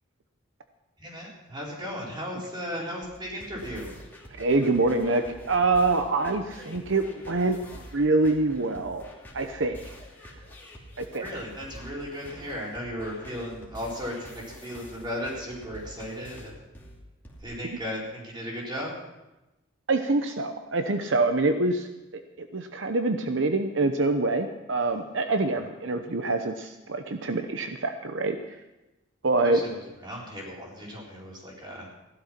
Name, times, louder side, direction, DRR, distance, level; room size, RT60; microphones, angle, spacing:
voice 1, 1.0-3.9 11.2-16.6 17.4-18.9 25.5-25.7 29.4-31.9, equal, 20° right, -4 dB, 4.3 m, -36 dB
sound 1, 3.0-17.4, equal, 10° left, 2.5 m, -47 dB
voice 2, 4.4-7.6 7.9-9.0 9.3-9.9 11.0-11.3 19.9-28.4 29.2-29.6, right 3 dB, 65° right, 7 dB, 0.8 m, -25 dB
16.0 x 12.0 x 5.9 m, 1.0 s
head